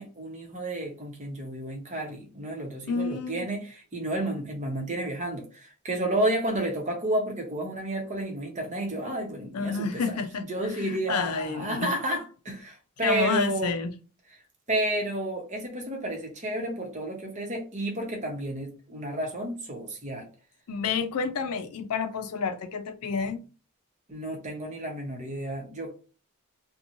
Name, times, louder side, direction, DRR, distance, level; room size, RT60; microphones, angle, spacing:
voice 1, 0.0-10.0 10.4-13.7 14.7-20.3 24.1-26.0, right 1 dB, 30° right, 0.8 m, -31 dB
voice 2, 2.9-3.5 9.5-11.9 13.0-13.9 20.7-23.4, left 5 dB, 85° left, 0.4 m, -29 dB
2.9 x 2.2 x 2.6 m
head